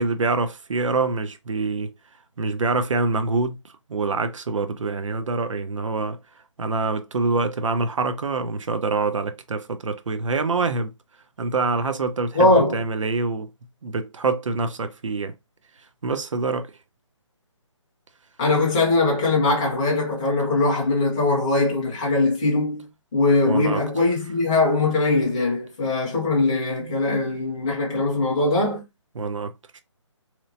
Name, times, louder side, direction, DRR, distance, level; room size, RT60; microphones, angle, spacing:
voice 1, 0.0-1.9 2.4-3.6 3.9-6.2 6.6-10.9 11.4-13.5 13.8-15.3 16.0-16.7 23.5-23.8 26.8-27.0 29.1-29.5, right 3 dB, 80° right, 0.6 m, -25 dB
voice 2, 12.3-12.8 18.4-28.8, left 2 dB, 10° left, 0.5 m, -21 dB
2.9 x 2.0 x 2.6 m
hypercardioid pair, 170°, 16 cm